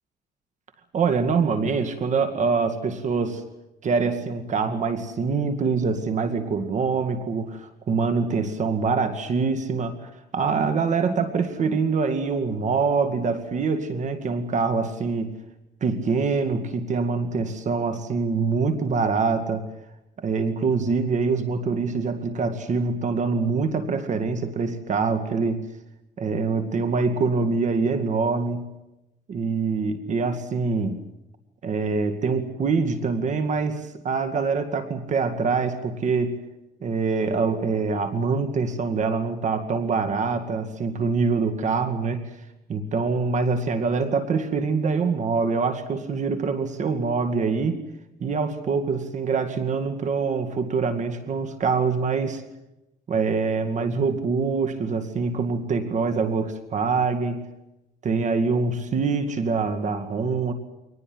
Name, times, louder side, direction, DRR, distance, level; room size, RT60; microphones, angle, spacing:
voice 1, 0.9-3.4 3.8-15.3 15.8-19.6 20.2-25.6 26.2-28.7 29.3-31.0 31.6-36.4 36.8-42.3 42.7-47.8 48.2-52.4 53.1-57.5 58.0-60.5, right 4 dB, 45° right, 9 dB, 2.2 m, -24 dB
24.5 x 19.5 x 7.9 m, 0.93 s
cardioid pair, 110°, 17 cm